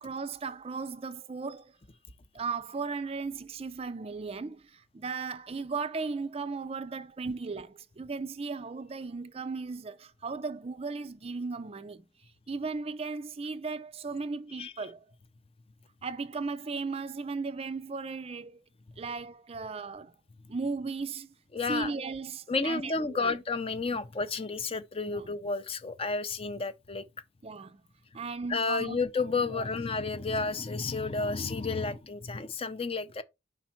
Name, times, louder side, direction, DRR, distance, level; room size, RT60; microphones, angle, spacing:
voice 1, 0.0-1.7 2.3-12.0 12.5-15.0 16.0-18.6 19.0-20.1 20.5-21.3 21.7-23.4 25.1-25.3 27.4-27.8 28.1-29.0 29.5-29.7, right 4 dB, 30° right, 0.4 m, -36 dB
voice 2, 21.5-21.9 22.5-27.0 28.5-33.2, left 4 dB, 30° left, 0.5 m, -31 dB
5.1 x 4.2 x 5.7 m
head